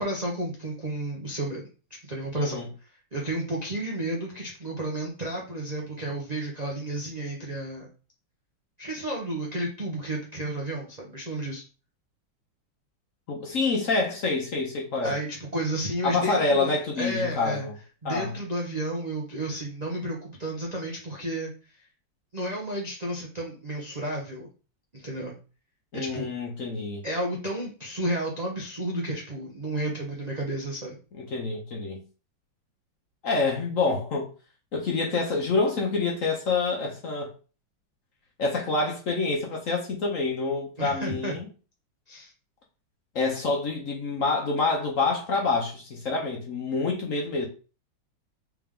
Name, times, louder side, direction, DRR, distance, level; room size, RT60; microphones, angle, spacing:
voice 1, 0.0-1.6 2.0-2.6 3.1-7.9 8.8-11.6 15.0-16.7 17.0-17.7 18.0-21.5 22.3-24.5 24.9-25.3 25.9-26.3 27.0-31.0 40.8-41.3 42.1-42.3, right 1 dB, 50° right, 0.4 m, -32 dB
voice 2, 2.3-2.7 13.3-15.1 16.0-17.7 18.0-18.3 25.9-27.0 31.1-32.0 33.2-34.3 34.7-37.3 38.4-41.5 43.1-47.5, left 3 dB, 55° left, 1.0 m, -27 dB
3.5 x 3.4 x 3.5 m
omnidirectional pair, 2.1 m